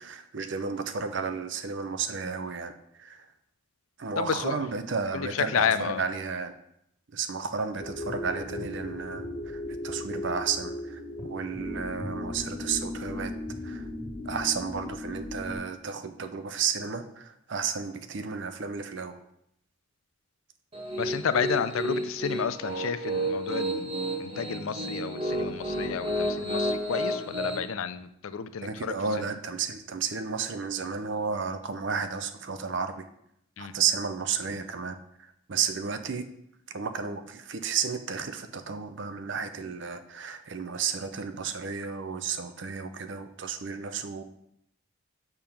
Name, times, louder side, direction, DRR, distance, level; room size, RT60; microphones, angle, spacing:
voice 1, 0.0-3.3 4.0-6.6 7.1-13.3 13.6-13.9 14.2-19.2 28.6-33.1 33.6-36.3 36.7-44.2, right 6 dB, 60° right, 9 dB, 0.6 m, -32 dB
voice 2, 4.2-4.6 5.1-6.0 21.0-23.9 24.2-29.3 33.6-33.7, left 7 dB, 75° left, 13 dB, 0.4 m, -31 dB
sound 1, 7.8-15.6, left 1 dB, 20° left, 2.0 m, -37 dB
Piano, 20.7-27.6, equal, 30° right, 1.4 m, -31 dB
6.8 x 3.6 x 5.8 m, 0.75 s
head